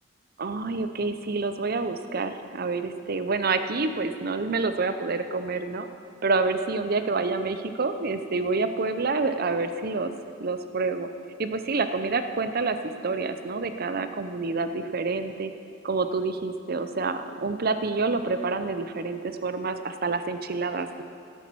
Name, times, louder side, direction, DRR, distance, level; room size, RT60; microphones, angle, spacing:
voice 1, 0.4-5.9 6.2-10.1 10.4-11.1 11.4-12.8 13.0-15.5 15.8-21.0, right 3 dB, 50° right, 9 dB, 0.6 m, -28 dB
13.5 x 8.3 x 6.2 m, 2.4 s
head